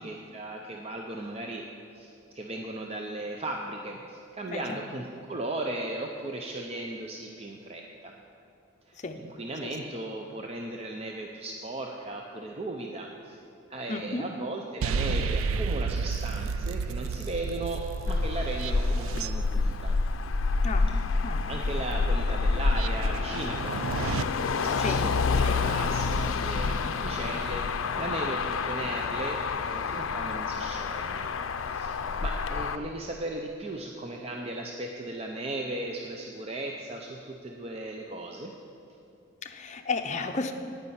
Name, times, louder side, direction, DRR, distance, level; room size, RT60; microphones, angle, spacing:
voice 1, 0.0-1.6 1.9-8.1 8.9-13.4 13.7-20.0 21.5-31.3 31.6-38.5, right 2 dB, 30° right, 1 dB, 0.6 m, -37 dB
voice 2, 4.5-4.8 9.0-9.2 9.6-9.7 13.9-14.2 20.6-20.9 21.2-21.8 24.8-25.1 25.4-25.6 39.4-40.5, left 3 dB, 35° left, 5 dB, 0.6 m, -33 dB
sound 1, 14.8-24.2, right 5 dB, 85° right, 0.4 m, -33 dB
Motor vehicle (road), 18.1-32.8, left 4 dB, 80° left, 0.5 m, -28 dB
9.5 x 9.4 x 5.7 m, 2.8 s
head